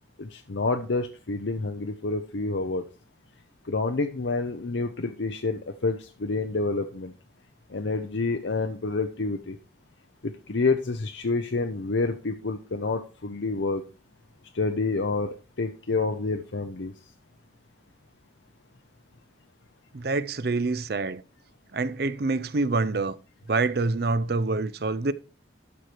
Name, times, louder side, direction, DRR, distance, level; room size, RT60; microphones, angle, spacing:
voice 1, 0.2-2.8 3.7-7.1 7.7-9.6 10.2-13.8 14.5-16.9, left 3 dB, 75° left, 0.7 m, -28 dB
voice 2, 19.9-21.2 21.7-23.2 23.5-25.1, right 3 dB, 55° right, 0.5 m, -26 dB
12.0 x 4.9 x 4.5 m
head